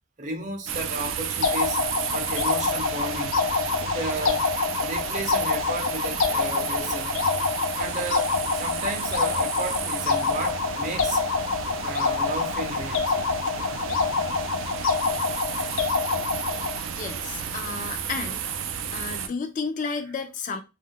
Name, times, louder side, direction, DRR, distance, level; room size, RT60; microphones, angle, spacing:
voice 1, 0.2-1.8 2.1-3.4 3.8-4.5 4.8-7.1 7.8-11.2 11.8-13.1 13.5-13.8 14.8-15.1 15.6-15.9 17.9-18.0, right 1 dB, 40° right, 0.6 m, -33 dB
sound 1, 0.7-19.3, right 7 dB, 85° right, 0.4 m, -32 dB
sound 2, 1.4-16.8, left 5 dB, 90° left, 0.6 m, -26 dB
voice 2, 16.9-18.4 18.9-20.6, left 4 dB, 40° left, 0.3 m, -32 dB
2.3 x 2.1 x 3.5 m
head